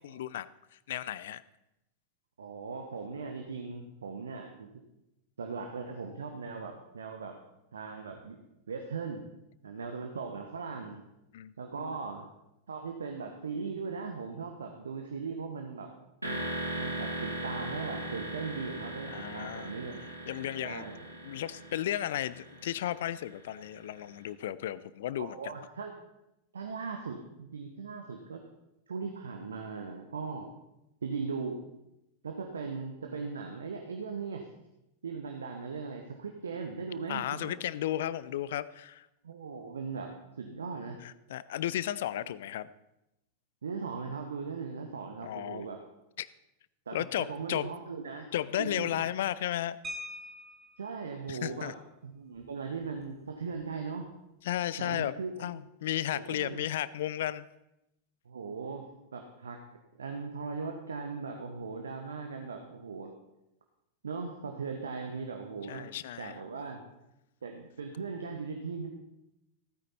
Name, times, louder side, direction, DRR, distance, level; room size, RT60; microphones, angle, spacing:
voice 1, 0.0-1.4 11.3-12.0 19.1-19.7 20.3-20.8 21.2-25.4 37.1-39.1 41.0-42.7 45.2-45.7 46.2-46.3 46.9-47.7 48.3-49.8 51.3-51.7 54.4-55.1 55.4-57.5 65.7-66.4, left 12 dB, 55° left, 18 dB, 0.5 m, -34 dB
voice 2, 2.4-4.7 5.4-7.3 7.7-8.4 8.7-9.2 9.6-11.0 11.6-12.3 12.7-15.9 16.8-20.0 20.6-21.0 25.2-25.9 26.5-28.4 28.9-30.5 31.0-31.7 32.2-34.5 35.0-37.6 39.2-40.1 40.4-41.0 43.6-45.8 46.9-48.3 48.6-48.9 50.8-51.7 52.0-54.1 54.8-55.5 56.1-56.6 58.2-58.9 59.1-59.6 59.9-63.1 64.0-65.9 66.2-66.8 67.4-68.9, right 5 dB, 70° right, 4 dB, 1.2 m, -39 dB
sound 1, 16.2-24.0, right 1 dB, 85° right, 2.3 m, -39 dB
sound 2, 49.8-50.9 52.4-52.5 52.8-53.0 53.4-53.7, left 1 dB, 20° right, 1.5 m, -43 dB
16.0 x 9.4 x 4.2 m, 0.89 s
figure-of-eight pair, 90°, 0 cm